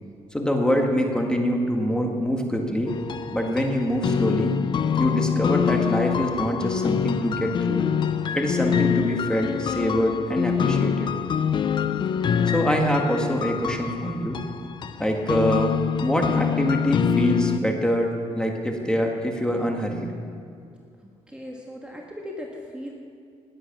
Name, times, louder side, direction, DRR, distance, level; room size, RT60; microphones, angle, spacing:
voice 1, 0.3-2.9 3.3-4.6 5.0-7.8 8.3-11.1 12.5-14.4 15.0-20.1, equal, 5° left, 2 dB, 1.8 m, -24 dB
sound 1, 2.9-17.6, left 8 dB, 40° left, 0.5 m, -25 dB
voice 2, 21.0-22.9, left 1 dB, 10° right, -1 dB, 1.5 m, -38 dB
19.0 x 8.0 x 6.1 m, 2.4 s
cardioid pair, 115°, 12 cm